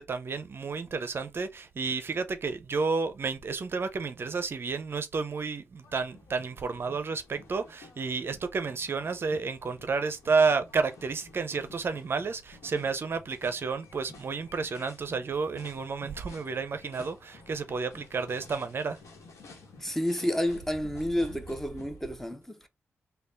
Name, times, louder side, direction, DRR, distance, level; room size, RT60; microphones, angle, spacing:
voice 1, 0.0-19.0, right 4 dB, 50° right, 0.5 m, -31 dB
sound 1, 5.8-22.1, left 3 dB, 70° left, 1.1 m, -52 dB
voice 2, 19.8-22.7, left 1 dB, 5° left, 0.7 m, -30 dB
3.4 x 2.3 x 3.8 m
cardioid pair, 60°, 5 cm